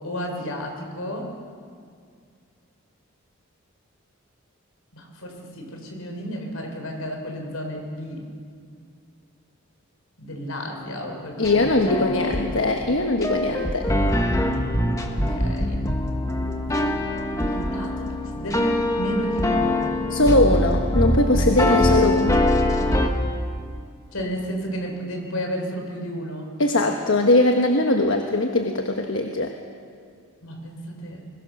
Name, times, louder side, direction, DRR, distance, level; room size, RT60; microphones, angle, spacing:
voice 1, 0.0-1.3 4.9-8.3 10.2-12.4 15.0-15.9 17.5-20.0 21.7-22.5 24.1-26.6 30.4-31.2, equal, 80° left, 3 dB, 4.5 m, -32 dB
voice 2, 11.4-13.9 20.1-22.4 26.6-29.5, left 2 dB, 65° left, 3 dB, 1.2 m, -21 dB
sound 1, 11.4-23.1, left 1 dB, 15° left, 1.4 m, -23 dB
22.0 x 21.0 x 6.5 m, 2.2 s
head